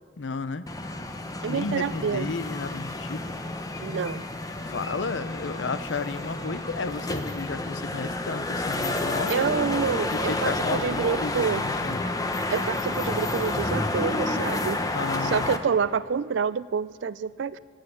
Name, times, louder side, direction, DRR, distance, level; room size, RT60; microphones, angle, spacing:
voice 1, 0.2-0.6 1.5-3.4 4.7-9.4 10.1-11.3 11.6-12.0 14.9-15.5, left 4 dB, 80° left, 13 dB, 0.7 m, -33 dB
sound 1, 0.7-15.6, left 2 dB, 20° left, 0.8 m, -30 dB
voice 2, 1.4-2.3 3.8-4.2 9.3-11.6 12.5-14.8 15.2-17.6, right 6 dB, 75° right, 18 dB, 0.4 m, -28 dB
16.0 x 9.0 x 8.6 m, 2.2 s
head